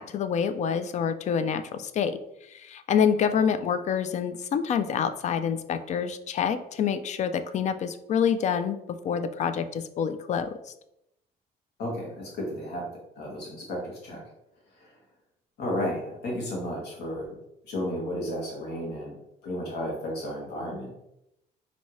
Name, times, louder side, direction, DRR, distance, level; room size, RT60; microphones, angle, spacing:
voice 1, 0.0-2.2 2.5-10.7, left 7 dB, 45° left, 11 dB, 0.4 m, -27 dB
voice 2, 11.8-12.9 13.2-14.2 14.8-14.9 15.6-17.3 17.7-19.1 19.4-20.9, equal, 75° left, -1 dB, 1.5 m, -33 dB
4.2 x 2.7 x 3.1 m, 0.83 s
cardioid pair, 110°, 17 cm